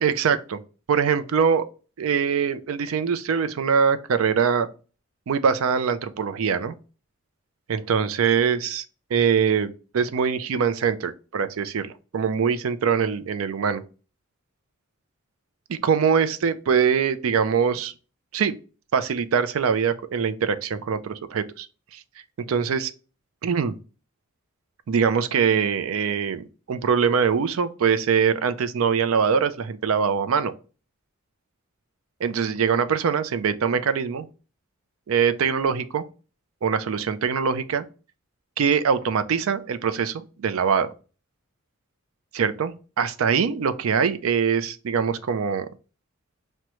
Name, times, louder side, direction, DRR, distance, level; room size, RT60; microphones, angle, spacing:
voice 1, 0.0-0.6 0.9-1.7 2.0-4.7 5.3-6.7 7.7-8.8 9.1-13.8 15.7-17.9 18.3-18.5 18.9-21.7 21.9-22.0 22.4-22.9 23.4-23.8 24.9-30.5 32.2-34.3 35.1-36.0 36.6-37.9 38.6-40.9 42.3-45.7, right 6 dB, 70° right, 0.4 m, -23 dB
6.0 x 2.2 x 2.9 m
head